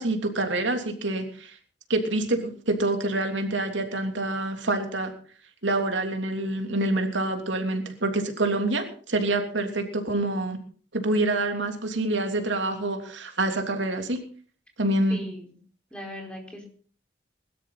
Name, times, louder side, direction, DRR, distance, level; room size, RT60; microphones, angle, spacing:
voice 1, 0.0-1.5 1.9-5.1 5.6-10.6 10.9-14.2 14.8-15.2, right 2 dB, 90° right, 5 dB, 3.1 m, -26 dB
voice 2, 15.1-15.5 15.9-16.7, left 1 dB, 5° left, 1 dB, 4.6 m, -38 dB
22.0 x 13.0 x 4.1 m, 0.44 s
head